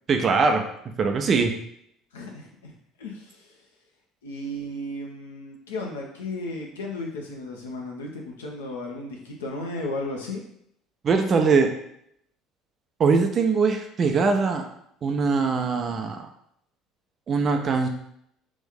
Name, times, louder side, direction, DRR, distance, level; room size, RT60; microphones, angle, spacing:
voice 1, 0.1-0.6 1.0-1.5 11.0-11.7 13.0-14.7 15.0-16.2 17.3-17.9, right 4 dB, 40° right, 4 dB, 0.6 m, -21 dB
voice 2, 2.1-3.5 4.2-10.4, left 1 dB, 80° left, 0 dB, 0.7 m, -34 dB
3.0 x 2.6 x 3.7 m, 0.71 s
figure-of-eight pair, 60°, 0 cm